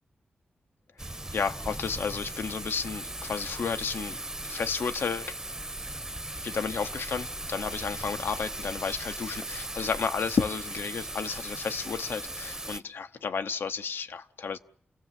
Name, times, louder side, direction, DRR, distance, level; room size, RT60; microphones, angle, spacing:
voice 1, 1.0-5.3 6.4-14.6, left 6 dB, 85° left, 0.8 m, -32 dB
Thunder / Rain, 1.0-12.8, right 1 dB, 15° right, 0.8 m, -38 dB
29.0 x 16.5 x 7.5 m
cardioid pair, 70°, 4 cm